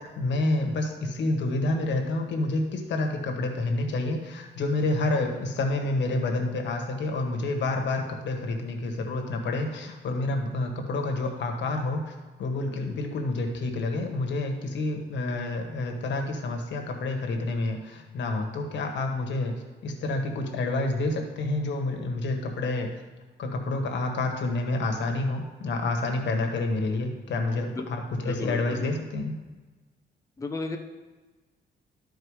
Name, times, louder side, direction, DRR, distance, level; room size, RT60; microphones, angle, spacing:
voice 1, 0.2-19.5 19.8-22.9 23.4-29.4, left 2 dB, 75° left, 3 dB, 1.4 m, -28 dB
voice 2, 28.2-28.8 30.4-30.8, left 2 dB, 15° left, 3 dB, 0.7 m, -34 dB
12.5 x 4.5 x 4.8 m, 1.3 s
cardioid pair, 130°, 19 cm